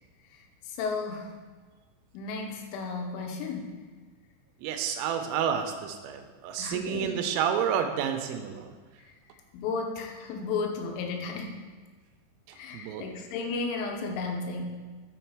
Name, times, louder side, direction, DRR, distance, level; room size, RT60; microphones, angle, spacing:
voice 1, 0.3-1.3 2.1-3.8 6.6-7.1 9.0-9.1 9.5-11.6 12.5-14.6, left 4 dB, 85° left, 2 dB, 3.3 m, -34 dB
voice 2, 4.6-8.7 12.5-13.0, right 8 dB, 85° right, 6 dB, 3.1 m, -30 dB
6.5 x 6.2 x 4.5 m, 1.4 s
omnidirectional pair, 5.7 m